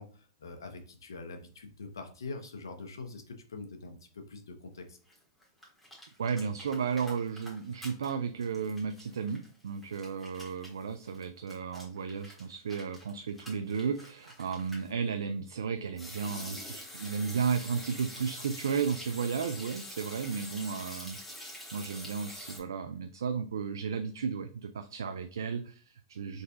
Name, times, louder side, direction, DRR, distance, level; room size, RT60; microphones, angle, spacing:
voice 1, 0.0-5.0, left 3 dB, 85° left, 5 dB, 0.9 m, -44 dB
sound 1, 5.1-5.2 5.4-8.1 8.4-14.9 16.0-22.6, left 1 dB, 5° left, 1.9 m, -46 dB
voice 2, 6.2-26.4, right 6 dB, 80° right, 8 dB, 0.3 m, -34 dB
3.9 x 3.8 x 2.3 m, 0.42 s
hypercardioid pair, 110°, 2 cm